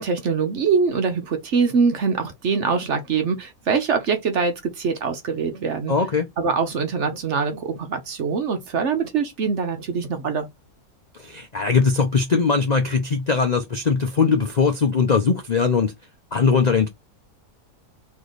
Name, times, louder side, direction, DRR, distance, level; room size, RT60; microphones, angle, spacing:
voice 1, 0.0-5.9 6.4-10.5, right 5 dB, 55° right, 0.9 m, -23 dB
voice 2, 5.9-6.3 11.2-15.9 16.3-16.9, left 5 dB, 70° left, 0.4 m, -20 dB
3.3 x 3.0 x 3.9 m
omnidirectional pair, 1.7 m